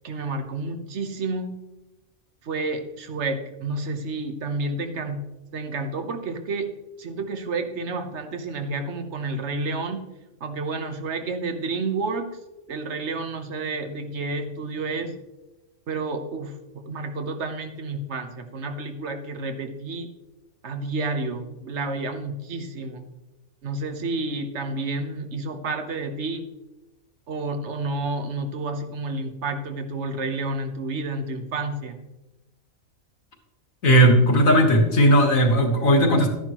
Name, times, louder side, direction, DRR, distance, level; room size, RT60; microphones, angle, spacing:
voice 1, 0.0-1.5 2.4-6.7 7.0-10.1 10.4-12.4 12.7-15.2 15.9-20.1 20.6-23.0 23.6-26.5 27.3-32.0, right 3 dB, 55° right, 7 dB, 1.3 m, -30 dB
voice 2, 33.8-36.3, equal, 70° left, 2 dB, 2.0 m, -17 dB
13.0 x 10.0 x 3.0 m, 1.0 s
omnidirectional pair, 1.5 m